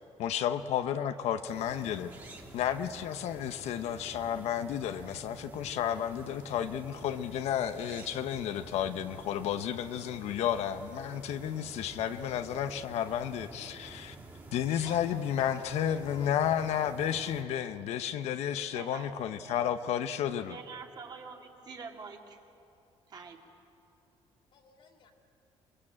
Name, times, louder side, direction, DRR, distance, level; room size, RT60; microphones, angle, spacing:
voice 1, 0.2-2.1 2.5-14.2 14.5-20.6, left 10 dB, 80° left, 9 dB, 0.8 m, -32 dB
sound 1, 1.5-17.4, right 2 dB, 20° right, 2.6 m, -49 dB
voice 2, 14.8-16.8 17.1-17.6 24.5-25.1, left 6 dB, 50° left, 4 dB, 2.6 m, -51 dB
voice 3, 18.6-19.7 20.5-22.4 23.1-23.4, right 5 dB, 40° right, 1 dB, 2.5 m, -46 dB
27.5 x 21.0 x 8.7 m, 2.7 s
cardioid pair, 155°, 11 cm